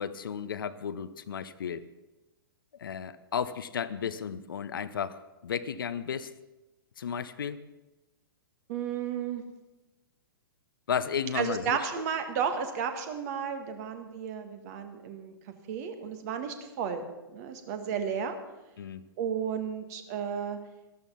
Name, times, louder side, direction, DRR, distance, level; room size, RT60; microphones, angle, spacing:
voice 1, 0.0-1.8 2.8-6.3 7.0-7.6 10.9-11.8 18.8-19.0, left 7 dB, 65° left, 14 dB, 0.7 m, -33 dB
voice 2, 8.7-9.4 11.3-15.3 15.7-17.0 17.3-18.4 19.2-20.6, right 7 dB, 45° right, 7 dB, 1.8 m, -33 dB
13.0 x 13.0 x 5.7 m, 1.0 s
figure-of-eight pair, 110°, 12 cm